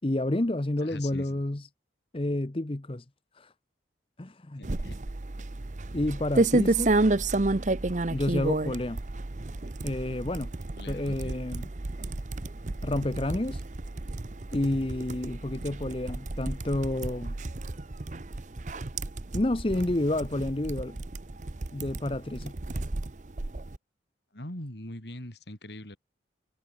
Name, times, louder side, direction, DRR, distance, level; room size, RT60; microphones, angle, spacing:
voice 1, 0.0-1.6 2.1-3.0 3.3-3.5 4.2-4.7 5.9-6.9 8.1-9.0 9.8-10.5 10.9-11.7 12.8-13.6 14.5-17.3 19.3-21.0 21.7-22.5, left 1 dB, 30° left, 0.8 m, -29 dB
voice 2, 0.8-1.4 4.6-5.0 10.7-11.4 24.3-26.0, left 1 dB, 65° left, 4.9 m, -42 dB
sound 1, 4.6-23.8, right 2 dB, 40° right, 0.8 m, -31 dB
head